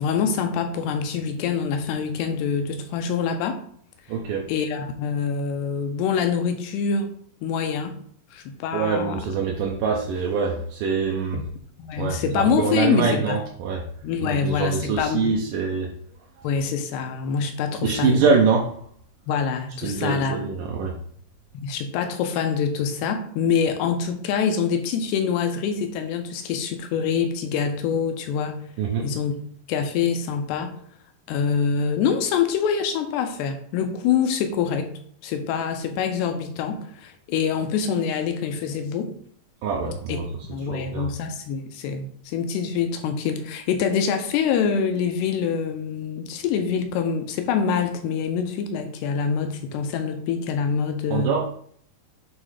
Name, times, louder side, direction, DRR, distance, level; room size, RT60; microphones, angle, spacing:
voice 1, 0.0-3.6 4.5-7.1 7.4-8.0 8.3-9.2 11.3-11.4 11.8-13.4 14.0-15.3 16.4-18.2 19.3-20.5 21.5-28.6 29.0-29.3 29.7-30.7 31.3-34.9 35.2-39.1 40.1-40.2 40.5-51.4, left 6 dB, 85° left, 6 dB, 2.9 m, -25 dB
voice 2, 4.1-4.5 8.7-11.4 12.0-13.8 14.2-15.9 17.8-18.7 19.8-21.0 28.8-29.1 39.6-40.2 40.7-41.1 51.1-51.4, right 5 dB, 80° right, -1 dB, 1.9 m, -24 dB
8.5 x 3.2 x 4.9 m, 0.62 s
omnidirectional pair, 4.7 m